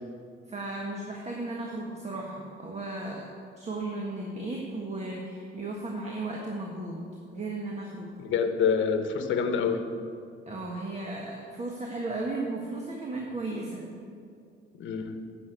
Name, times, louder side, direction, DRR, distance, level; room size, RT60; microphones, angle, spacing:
voice 1, 0.5-3.3 3.6-7.0 7.3-8.1 10.5-13.8, right 2 dB, 35° right, -1 dB, 1.5 m, -35 dB
voice 2, 8.2-9.8 14.8-15.2, left 6 dB, 75° left, 7 dB, 1.0 m, -26 dB
10.0 x 6.5 x 8.2 m, 2.4 s
cardioid pair, 90°, 20 cm